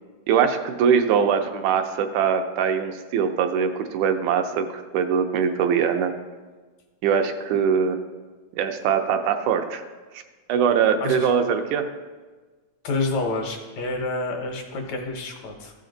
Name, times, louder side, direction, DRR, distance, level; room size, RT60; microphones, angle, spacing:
voice 1, 0.3-6.1 7.0-8.0 8.5-9.8 10.1-10.2 10.5-11.9, right 7 dB, 80° right, 6 dB, 2.0 m, -22 dB
voice 2, 11.0-11.3 12.8-15.7, left 3 dB, 70° left, 3 dB, 2.0 m, -28 dB
14.5 x 5.1 x 3.9 m, 1.3 s
omnidirectional pair, 3.5 m